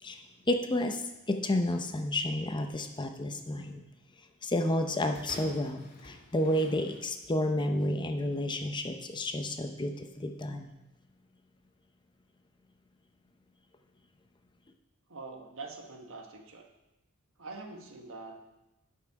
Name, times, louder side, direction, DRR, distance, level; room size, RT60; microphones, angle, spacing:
voice 1, 0.0-3.8 4.4-10.7, left 1 dB, 20° left, 5 dB, 0.6 m, -31 dB
sound 1, 5.1-7.4 8.2-8.3, left 2 dB, 45° left, 1.9 m, -50 dB
voice 2, 15.1-16.7 17.4-18.4, right 3 dB, 65° right, 3 dB, 1.3 m, -44 dB
12.0 x 5.7 x 4.7 m, 0.98 s
head